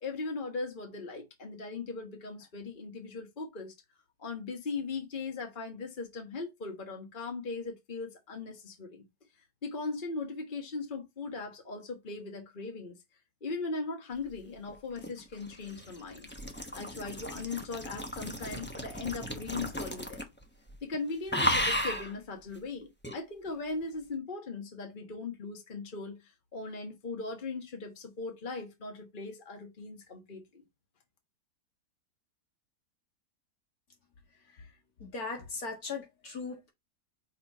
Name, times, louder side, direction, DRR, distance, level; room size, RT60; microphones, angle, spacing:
voice 1, 0.0-3.7 4.2-9.0 9.6-12.9 13.4-16.3 16.7-20.3 20.8-30.6, left 3 dB, 30° left, 1.6 m, -39 dB
sound 1, 14.7-20.4 20.7-20.9 21.3-22.1 23.0-23.2, equal, 10° left, 0.6 m, -34 dB
voice 2, 35.0-36.7, left 4 dB, 60° left, 2.2 m, -39 dB
5.6 x 4.3 x 4.2 m
omnidirectional pair, 1.8 m